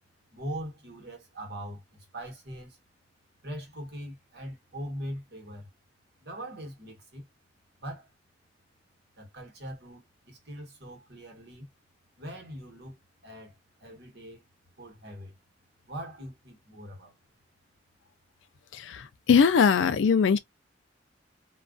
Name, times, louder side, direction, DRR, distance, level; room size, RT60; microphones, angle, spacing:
voice 1, 0.3-2.8 3.4-5.7 6.2-7.3 7.8-8.1 9.2-11.7 12.2-14.5 14.8-15.4 15.9-17.2, equal, 60° right, 1.2 m, -41 dB
voice 2, 18.7-20.4, left 6 dB, 80° left, 0.4 m, -21 dB
2.3 x 2.3 x 2.3 m
head